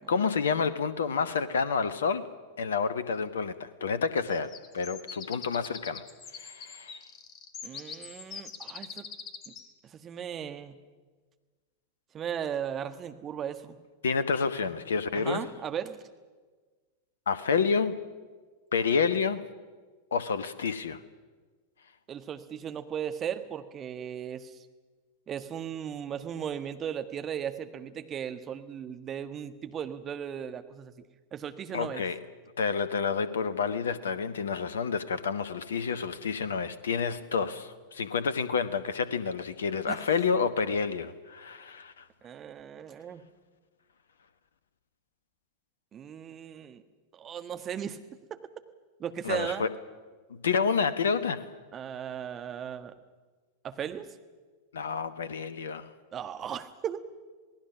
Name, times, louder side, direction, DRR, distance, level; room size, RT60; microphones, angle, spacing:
voice 1, 0.1-2.2 2.6-6.0 6.3-7.0 14.0-15.4 17.3-18.0 18.7-19.4 20.1-21.0 31.7-32.2 32.6-42.0 49.2-49.7 50.3-51.5 54.7-55.9, left 5 dB, 65° left, 1.1 m, -29 dB
sound 1, 4.3-9.7, left 6 dB, 30° left, 1.8 m, -44 dB
voice 2, 7.6-9.1 9.9-10.8 12.1-13.8 15.1-16.0 22.1-24.6 25.3-30.9 31.3-32.0 39.9-40.0 42.2-43.2 45.9-46.8 47.1-48.0 48.3-48.4 49.0-49.6 51.7-52.9 53.6-54.1 56.1-57.0, right 8 dB, 25° right, 1.5 m, -36 dB
27.5 x 18.5 x 6.1 m
figure-of-eight pair, 90°, 0 cm